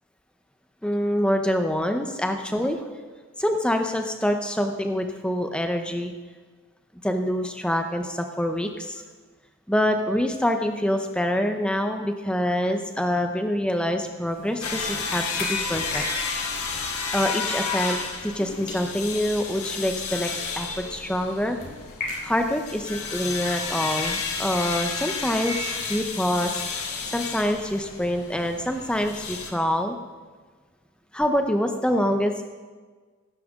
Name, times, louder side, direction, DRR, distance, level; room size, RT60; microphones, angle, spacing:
voice 1, 0.8-3.0 3.4-6.1 7.0-9.0 9.7-16.0 16.7-21.6 22.2-26.5 27.1-30.0 31.1-32.4, equal, 5° left, 5 dB, 0.8 m, -26 dB
sound 1, 14.3-18.4 18.7-22.8, left 2 dB, 50° left, 3.1 m, -40 dB
sound 2, 14.6-29.5, left 4 dB, 90° left, 1.5 m, -31 dB
17.0 x 10.0 x 3.7 m, 1.4 s
head